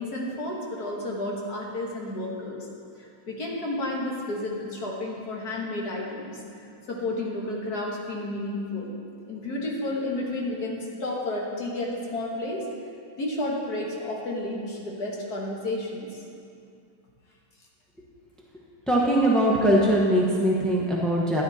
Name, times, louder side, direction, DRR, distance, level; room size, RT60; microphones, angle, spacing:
voice 1, 0.0-2.7 3.3-6.4 6.9-8.9 9.3-12.6 13.2-16.1, left 1 dB, 45° left, -2 dB, 2.1 m, -31 dB
voice 2, 18.9-21.4, right 1 dB, ahead, -4 dB, 0.4 m, -21 dB
13.0 x 9.9 x 4.3 m, 2.4 s
omnidirectional pair, 2.4 m